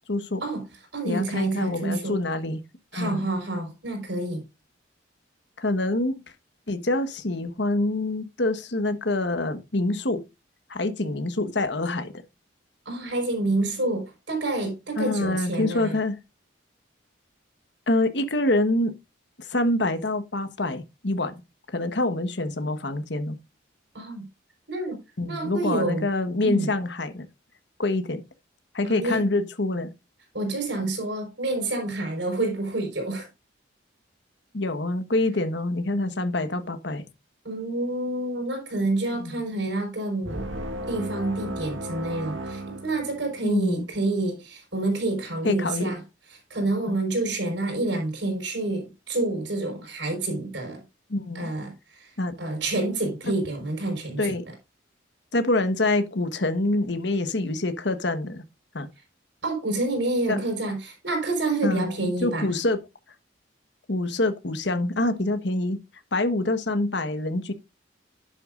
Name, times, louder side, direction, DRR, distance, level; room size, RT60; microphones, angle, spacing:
voice 1, 0.1-0.4 1.0-2.6 2.9-3.3 5.6-6.2 6.7-10.2 10.7-12.1 15.0-16.2 17.9-19.0 19.4-21.3 21.7-23.4 25.2-27.2 27.8-28.2 28.7-29.9 34.5-37.0 39.1-39.3 43.4-43.8 45.4-45.9 46.9-47.0 51.1-51.5 52.2-52.3 54.2-54.4 55.3-58.4 58.7-58.9 60.3-60.4 61.6-62.8 63.9-65.8 66.1-67.5, left 2 dB, 60° left, 1.3 m, -26 dB
voice 2, 0.9-2.2 2.9-4.4 12.8-15.9 23.9-24.2 24.7-25.0 25.3-26.1 26.4-26.7 28.8-29.2 30.3-33.3 37.4-40.4 40.9-46.0 46.5-50.8 51.3-54.4 59.4-62.5, right 2 dB, 65° right, 4.8 m, -28 dB
sound 1, 40.2-43.6, right 1 dB, 80° right, 1.6 m, -35 dB
11.5 x 8.3 x 2.5 m
head